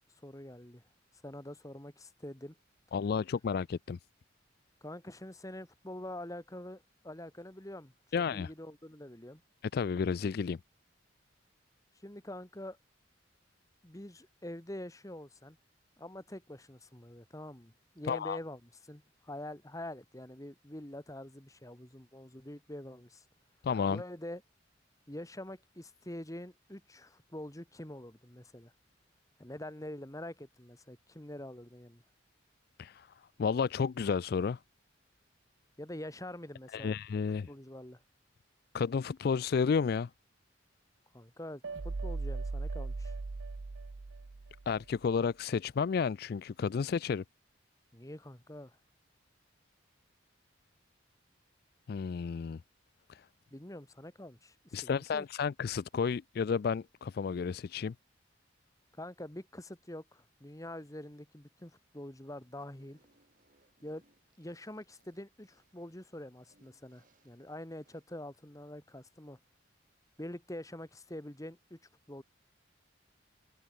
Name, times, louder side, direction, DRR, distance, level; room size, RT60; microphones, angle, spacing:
voice 1, 0.2-0.8 1.2-2.6 4.8-9.4 12.0-12.8 13.8-15.6 16.0-23.2 23.9-24.4 25.1-28.7 29.4-32.0 35.8-37.0 37.4-38.0 41.1-43.2 47.9-48.8 53.5-55.3 59.0-63.0 63.8-64.0 64.4-69.4 70.2-71.8 72.1-72.2, left 1 dB, 15° left, 1.9 m, -45 dB
voice 2, 2.9-4.0 8.1-8.5 9.7-10.6 18.1-18.4 23.6-24.0 32.8-33.1 33.4-34.6 36.7-37.5 38.7-40.1 44.7-47.2 51.9-52.6 53.1-53.2 54.7-57.9, left 6 dB, 50° left, 0.3 m, -31 dB
sound 1, 41.6-44.8, right 3 dB, 70° right, 0.7 m, -38 dB
Fart, 62.4-68.2, right 2 dB, 45° right, 4.6 m, -71 dB
head